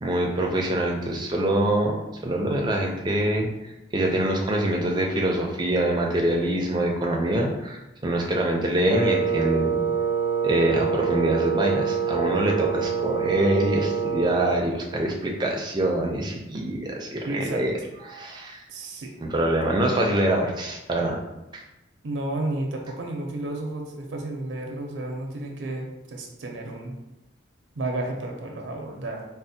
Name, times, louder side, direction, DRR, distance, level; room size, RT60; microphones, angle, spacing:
voice 1, 0.0-3.5 3.9-9.8 10.4-17.8 18.1-18.6 19.2-21.2 21.5-21.6, right 1 dB, 25° right, 0 dB, 0.4 m, -25 dB
Wind instrument woodwind instrument, 8.8-14.6, right 6 dB, 10° left, 0.7 m, -26 dB
voice 2, 17.2-17.6 18.7-19.1 22.0-27.0 27.8-29.3, right 2 dB, 80° right, 1 dB, 0.5 m, -32 dB
4.1 x 2.0 x 2.6 m, 0.96 s
head